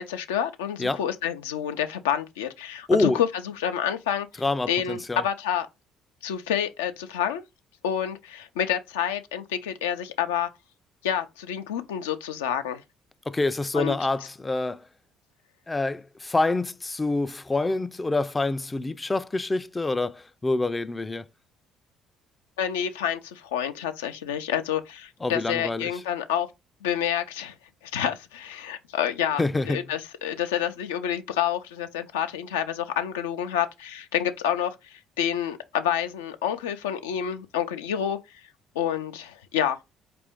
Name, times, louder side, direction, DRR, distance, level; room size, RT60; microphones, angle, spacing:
voice 1, 0.0-4.3 4.7-5.7 6.2-7.4 7.8-10.5 11.0-12.8 13.7-13.9 22.6-26.5 26.8-27.5 27.9-38.2 38.8-39.8, left 9 dB, 85° left, 0.5 m, -28 dB
voice 2, 2.9-3.2 4.4-5.2 13.3-14.8 15.7-21.2 25.2-25.9 29.4-29.8, left 2 dB, 20° left, 0.3 m, -26 dB
4.2 x 2.5 x 3.5 m
hypercardioid pair, 55°, 0 cm